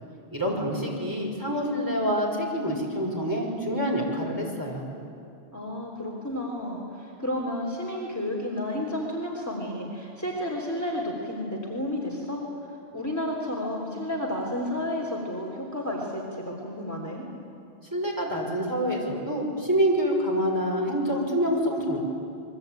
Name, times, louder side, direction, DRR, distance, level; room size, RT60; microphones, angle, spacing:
voice 1, 0.3-4.8 17.9-22.0, equal, 20° right, -2 dB, 5.7 m, -26 dB
voice 2, 5.5-12.4 12.9-17.2, left 1 dB, 15° left, -1 dB, 3.5 m, -31 dB
28.0 x 23.0 x 9.2 m, 2.6 s
omnidirectional pair, 1.1 m